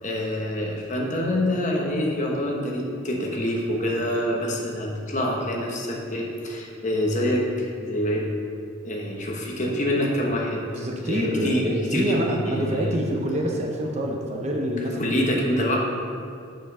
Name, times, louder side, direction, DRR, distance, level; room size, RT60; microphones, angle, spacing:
voice 1, 0.0-8.3 8.8-13.0 15.0-15.8, left 1 dB, 35° left, -1 dB, 1.1 m, -26 dB
voice 2, 10.7-15.2, equal, 30° right, 0 dB, 0.8 m, -26 dB
7.4 x 6.1 x 5.5 m, 2.4 s
head